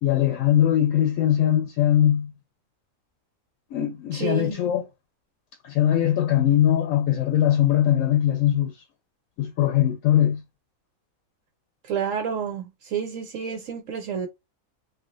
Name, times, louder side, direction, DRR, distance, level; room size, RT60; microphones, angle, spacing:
voice 1, 0.0-2.3 3.7-4.8 5.6-8.8 9.4-10.4, left 11 dB, 75° left, 0.9 m, -21 dB
voice 2, 4.1-4.6 11.8-14.3, right 7 dB, 70° right, 1.0 m, -29 dB
3.2 x 2.4 x 2.5 m
omnidirectional pair, 1.4 m